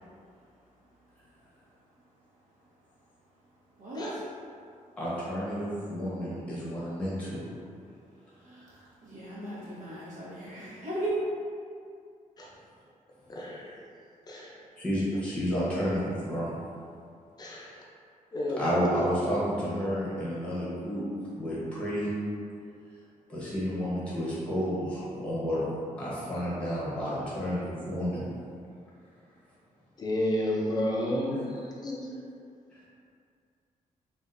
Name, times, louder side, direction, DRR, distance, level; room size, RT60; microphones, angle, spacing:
voice 1, 3.8-4.2 8.4-11.1, equal, 70° right, -9 dB, 1.1 m, -38 dB
voice 2, 5.0-7.4 14.8-16.5 17.5-17.8 18.6-21.0 21.4-22.1 23.3-25.6 26.0-28.3 32.7-32.8, equal, 10° left, -9 dB, 0.9 m, -31 dB
voice 3, 13.3-13.8 14.3-14.6 17.4-17.7 18.3-18.7 30.0-32.1, left 1 dB, 30° left, -4 dB, 0.5 m, -31 dB
3.6 x 2.4 x 2.5 m, 2.3 s
wide cardioid pair, 165°, 14 cm